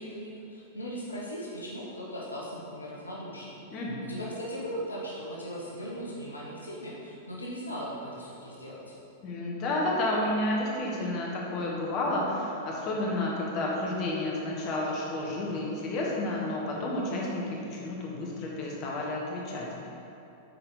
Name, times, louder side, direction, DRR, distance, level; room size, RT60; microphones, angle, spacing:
voice 1, 0.0-8.9, equal, 90° left, -4 dB, 1.1 m, -38 dB
voice 2, 3.7-4.0 9.2-17.4 17.7-19.9, left 1 dB, 40° left, -3 dB, 1.5 m, -31 dB
8.3 x 4.6 x 3.9 m, 2.8 s
figure-of-eight pair, 95°, 0 cm